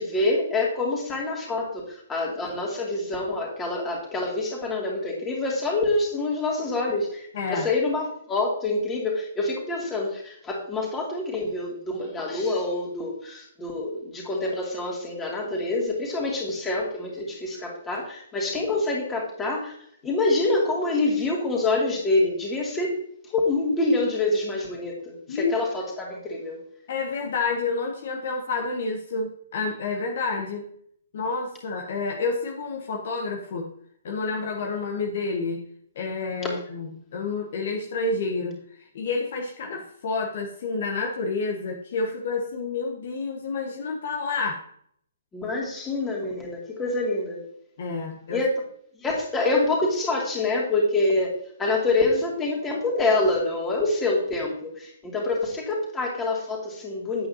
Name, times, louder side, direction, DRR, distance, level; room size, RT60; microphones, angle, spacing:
voice 1, 0.0-19.7 20.0-23.0 23.2-26.6 45.3-47.5 48.3-48.5 49.0-57.3, left 2 dB, 15° left, -2 dB, 2.7 m, -26 dB
voice 2, 7.3-7.7 25.3-25.5 26.9-30.7 31.1-33.7 34.0-35.6 36.0-38.6 38.9-44.6 47.8-48.4, left 4 dB, 50° left, 2 dB, 1.1 m, -29 dB
8.8 x 8.5 x 2.9 m, 0.66 s
figure-of-eight pair, 125°, 0 cm